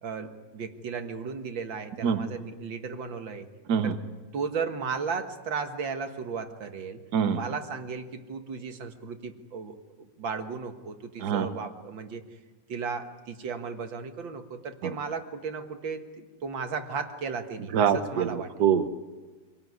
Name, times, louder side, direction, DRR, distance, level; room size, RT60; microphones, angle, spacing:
voice 1, 0.0-3.5 3.8-4.0 4.3-7.0 7.3-9.8 10.2-12.2 12.7-18.5, right 5 dB, 80° right, 6 dB, 2.3 m, -35 dB
voice 2, 17.7-18.9, right 7 dB, 60° right, 9 dB, 1.5 m, -24 dB
26.0 x 18.0 x 9.5 m, 1.3 s
omnidirectional pair, 2.1 m